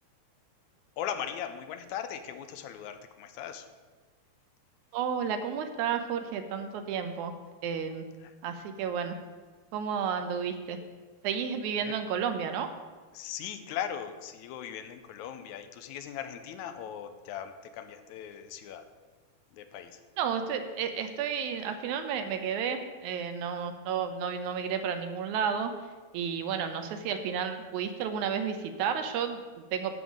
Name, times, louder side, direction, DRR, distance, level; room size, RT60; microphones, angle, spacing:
voice 1, 1.0-3.7 8.2-8.3 11.8-12.0 13.1-18.9 19.5-20.0, left 9 dB, 80° left, 9 dB, 1.9 m, -39 dB
voice 2, 4.9-7.3 7.6-8.1 8.4-9.2 9.7-10.8 11.2-12.7 20.2-25.7 26.1-29.9, right 7 dB, 80° right, 7 dB, 2.1 m, -32 dB
11.0 x 3.7 x 7.1 m, 1.3 s
omnidirectional pair, 3.4 m